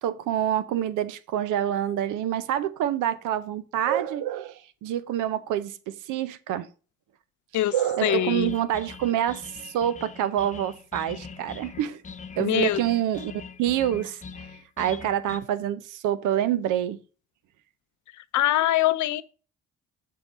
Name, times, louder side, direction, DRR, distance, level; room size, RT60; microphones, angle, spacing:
voice 1, 0.0-6.7 7.7-12.0 12.4-14.5 14.8-17.0, right 11 dB, 85° right, 0.6 m, -27 dB
voice 2, 8.0-8.5 12.4-12.8 18.3-19.2, left 14 dB, 70° left, 0.6 m, -23 dB
sound 1, 8.4-15.4, left 5 dB, 25° left, 0.6 m, -42 dB
6.7 x 3.7 x 4.1 m
cardioid pair, 90°, 30 cm